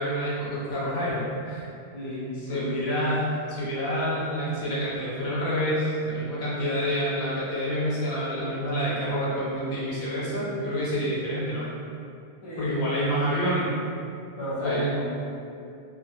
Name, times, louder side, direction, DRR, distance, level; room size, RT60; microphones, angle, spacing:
voice 1, 0.0-1.7 2.4-11.7 12.6-13.7 14.6-14.9, equal, 70° left, -7 dB, 0.8 m, -28 dB
voice 2, 1.9-2.7 12.4-12.8 14.4-15.0, equal, 35° left, -8 dB, 0.6 m, -33 dB
2.1 x 2.0 x 2.9 m, 2.5 s
omnidirectional pair, 1.1 m